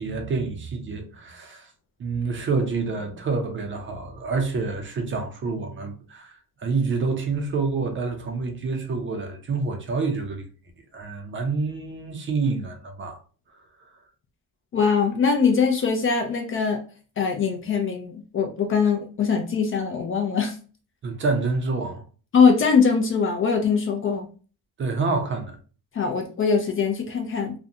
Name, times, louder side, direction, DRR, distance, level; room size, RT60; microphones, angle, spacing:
voice 1, 0.0-1.7 2.0-6.3 6.6-10.4 10.9-13.2 21.0-22.0 24.8-25.6, right 4 dB, 30° right, 0.5 m, -27 dB
voice 2, 14.7-16.8 17.2-20.6 22.3-24.3 25.9-27.5, left 5 dB, 35° left, 0.4 m, -22 dB
2.5 x 2.1 x 2.7 m
cardioid pair, 125°, 38 cm